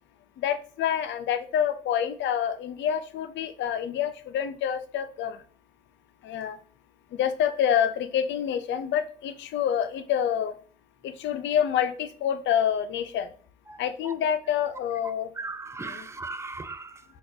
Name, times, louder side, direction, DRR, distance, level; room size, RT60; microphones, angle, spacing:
voice 1, 0.4-5.4 6.2-6.6 7.1-10.5 11.0-13.3 13.8-15.3 15.8-16.1, left 9 dB, 80° left, 0.4 m, -27 dB
voice 2, 13.7-14.1 15.4-17.0, right 3 dB, 15° right, 0.4 m, -38 dB
4.1 x 2.4 x 2.6 m
cardioid pair, 60°, 19 cm